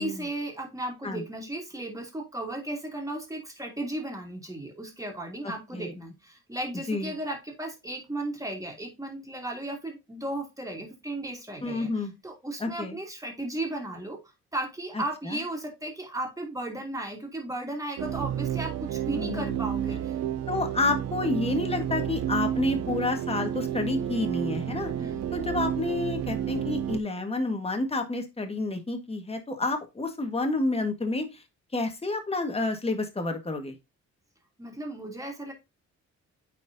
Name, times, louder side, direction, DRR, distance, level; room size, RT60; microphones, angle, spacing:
voice 1, 0.0-14.2 14.5-20.2 25.0-25.3 34.6-35.5, right 1 dB, 10° right, 1 dB, 2.7 m, -35 dB
voice 2, 11.6-12.1 12.6-13.0 14.9-15.4 19.1-19.6 20.5-24.9 25.3-31.4 31.7-33.7, left 2 dB, 20° left, 5 dB, 1.6 m, -29 dB
sound 1, 18.0-27.0, right 10 dB, 60° right, 0.5 m, -31 dB
9.1 x 4.3 x 2.7 m, 0.24 s
cardioid pair, 90°, 30 cm